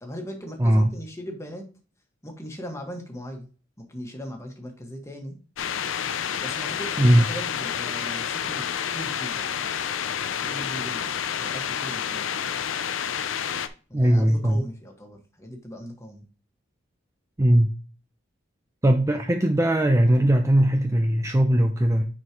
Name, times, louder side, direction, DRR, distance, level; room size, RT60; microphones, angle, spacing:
voice 1, 0.0-1.7 2.2-3.5 3.8-5.4 6.4-9.6 10.4-11.1 11.4-12.3 13.9-16.2, equal, 15° left, 1.6 m, -39 dB
voice 2, 0.6-0.9 7.0-7.3 13.9-14.6 17.4-17.7 18.8-22.1, right 1 dB, 15° right, 0.5 m, -19 dB
sound 1, 5.6-13.7, left 8 dB, 75° left, 0.5 m, -29 dB
9.5 x 4.5 x 3.0 m
head